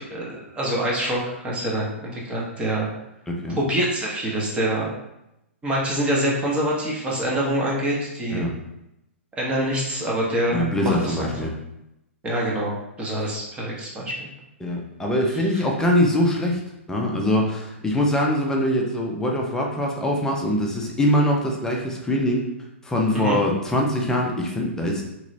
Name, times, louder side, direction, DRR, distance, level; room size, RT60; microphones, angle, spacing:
voice 1, 0.0-2.9 3.6-4.9 5.6-8.4 9.4-11.3 12.2-12.7 13.0-14.3 23.1-23.4, right 1 dB, 15° right, -3 dB, 0.8 m, -25 dB
voice 2, 3.3-3.6 8.3-8.5 10.5-11.5 14.6-16.6 16.9-22.4 22.8-25.0, left 1 dB, 10° left, -1 dB, 0.5 m, -23 dB
3.0 x 2.9 x 2.6 m, 0.86 s
hypercardioid pair, 120°, 7 cm